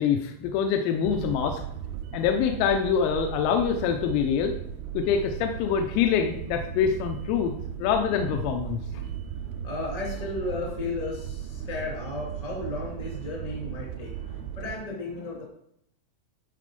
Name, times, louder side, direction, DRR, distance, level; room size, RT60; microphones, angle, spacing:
voice 1, 0.0-1.6 2.1-4.5 4.9-7.5 7.8-8.8, left 7 dB, 85° left, 4 dB, 3.4 m, -25 dB
sound 1, 1.0-14.8, right 9 dB, 85° right, 3.2 m, -37 dB
voice 2, 9.3-15.4, left 2 dB, 25° left, -3 dB, 0.8 m, -34 dB
12.0 x 4.2 x 5.3 m, 0.73 s
omnidirectional pair, 6.0 m